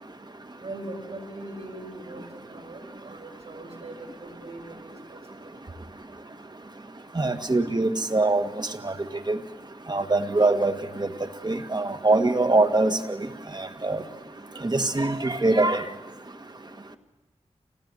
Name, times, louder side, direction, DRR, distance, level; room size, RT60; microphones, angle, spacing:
voice 1, 0.6-2.2 2.5-3.9 4.2-5.5, right 2 dB, 60° right, 3 dB, 6.0 m, -41 dB
voice 2, 7.2-8.4 8.8-8.9 9.3-9.4 9.9-10.7 11.0-11.1 11.4-13.0 13.6-14.0 14.6-15.8, right 2 dB, 35° right, 8 dB, 1.9 m, -22 dB
28.0 x 19.5 x 9.8 m, 1.1 s
wide cardioid pair, 65°, 12 cm